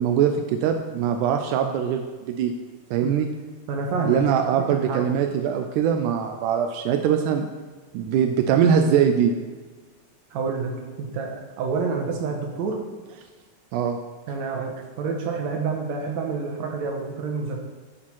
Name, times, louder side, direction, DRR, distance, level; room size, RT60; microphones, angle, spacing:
voice 1, 0.0-2.5 2.9-3.3 4.1-7.5 7.9-9.3 13.7-14.0, right 8 dB, 90° right, 5 dB, 2.1 m, -22 dB
voice 2, 3.7-4.2 4.7-5.1 10.3-12.8 14.3-17.6, right 4 dB, 70° right, 2 dB, 2.2 m, -28 dB
11.5 x 4.3 x 4.7 m, 1.4 s
omnidirectional pair, 3.5 m